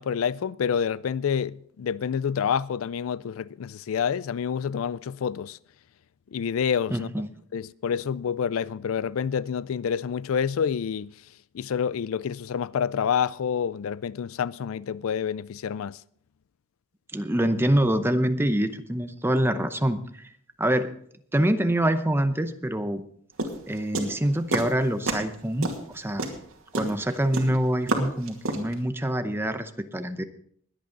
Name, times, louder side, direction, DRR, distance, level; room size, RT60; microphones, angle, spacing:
voice 1, 0.0-5.6 6.3-7.1 7.5-11.1 11.5-16.0, left 7 dB, 80° left, 0.4 m, -28 dB
voice 2, 6.9-7.3 17.1-20.3 20.6-20.9 21.3-23.0 23.7-26.3 26.7-30.2, right 1 dB, 10° right, 0.8 m, -25 dB
sound 1, 23.4-24.7 25.0-25.4 25.6-28.8, right 2 dB, 85° right, 2.2 m, -28 dB
21.0 x 8.7 x 3.9 m
head